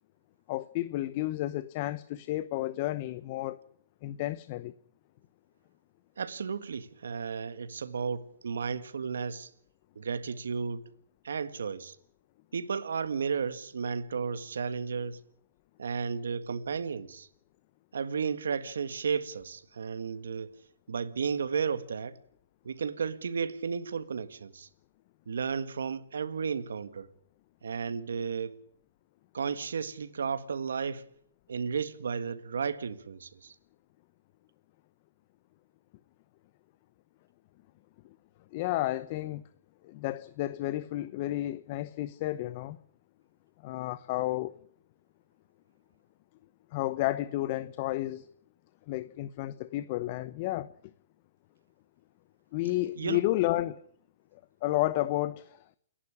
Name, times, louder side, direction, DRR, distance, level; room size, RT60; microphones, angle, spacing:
voice 1, 0.5-3.6 4.0-4.7 38.5-39.4 39.8-42.8 43.6-44.6 46.7-48.3 48.9-50.7 52.5-53.8 54.3-55.6, left 16 dB, 40° left, 0.8 m, -31 dB
voice 2, 6.2-9.5 10.0-10.8 11.2-12.0 12.5-15.2 15.8-17.3 17.9-20.5 20.9-22.2 22.6-24.7 25.3-27.1 27.6-28.5 29.3-31.1 31.5-33.6 53.0-53.2, right 6 dB, 80° right, 1.8 m, -33 dB
28.5 x 11.5 x 10.0 m
hypercardioid pair, 140°, 0 cm